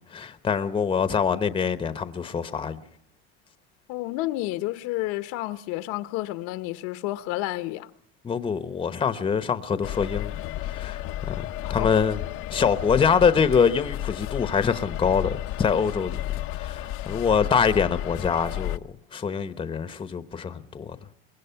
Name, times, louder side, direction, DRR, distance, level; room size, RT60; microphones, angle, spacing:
voice 1, 0.1-2.8 8.2-10.3 10.6-12.2 12.5-16.2 16.6-18.8 19.1-21.0, left 6 dB, 15° left, 1.0 m, -24 dB
voice 2, 3.9-7.9 11.8-11.9, left 17 dB, 65° left, 1.1 m, -30 dB
sound 1, 9.8-18.8, left 14 dB, 50° left, 0.8 m, -32 dB
24.0 x 20.5 x 5.8 m
supercardioid pair, 130°, 29 cm